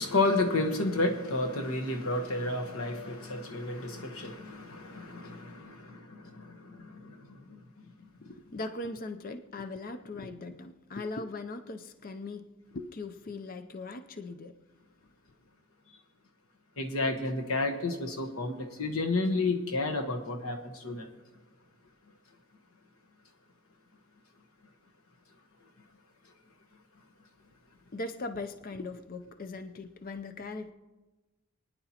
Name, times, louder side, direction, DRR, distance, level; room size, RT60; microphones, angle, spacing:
voice 1, 0.0-7.6 16.8-21.1, left 2 dB, 80° left, 1.2 m, -31 dB
voice 2, 8.2-12.5 12.7-14.5 27.9-30.7, left 2 dB, 40° left, 0.5 m, -39 dB
27.5 x 10.0 x 2.9 m
head